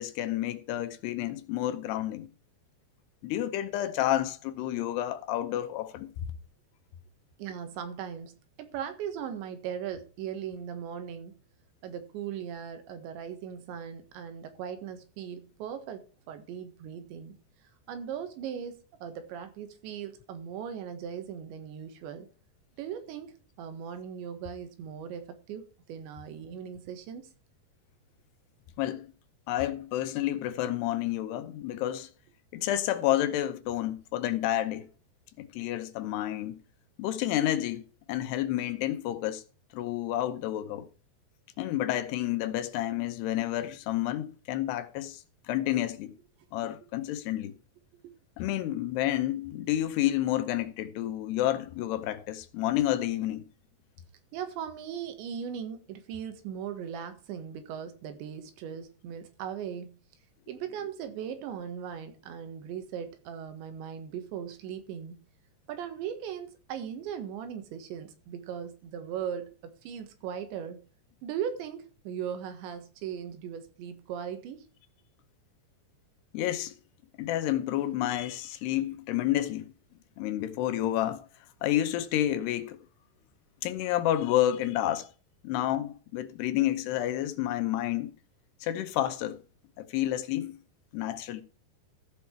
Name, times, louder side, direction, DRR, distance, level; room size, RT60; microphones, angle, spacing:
voice 1, 0.0-2.3 3.2-6.1 28.8-29.1 29.5-32.1 32.5-34.9 35.4-36.6 37.0-37.8 38.1-39.4 39.7-40.9 41.6-45.2 45.5-46.1 46.5-47.5 48.4-53.4 76.3-76.7 77.2-79.7 80.2-81.3 81.6-82.8 83.6-85.1 85.4-88.1 88.6-89.4 89.8-90.5 90.9-91.4, left 13 dB, 75° left, 2.8 m, -30 dB
voice 2, 7.4-11.4 11.8-17.4 17.9-22.3 22.8-27.3 46.6-46.7 48.0-48.1 54.3-60.0 60.5-65.2 65.7-70.8 71.2-74.7, right 8 dB, 85° right, 3.8 m, -38 dB
15.0 x 5.7 x 4.5 m
omnidirectional pair, 5.0 m